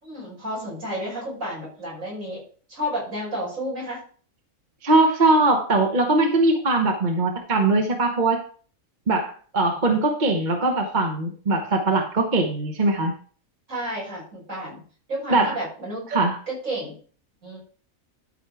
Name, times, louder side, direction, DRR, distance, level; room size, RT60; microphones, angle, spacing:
voice 1, 0.0-2.4 2.7-4.0 13.7-14.8 15.1-16.1 16.5-16.9 17.4-17.6, equal, 70° right, -5 dB, 6.0 m, -31 dB
voice 2, 4.8-8.4 9.1-13.1 15.3-15.6 16.1-16.3, right 2 dB, 35° right, 3 dB, 1.2 m, -21 dB
12.5 x 4.6 x 4.8 m, 0.43 s
omnidirectional pair, 1.4 m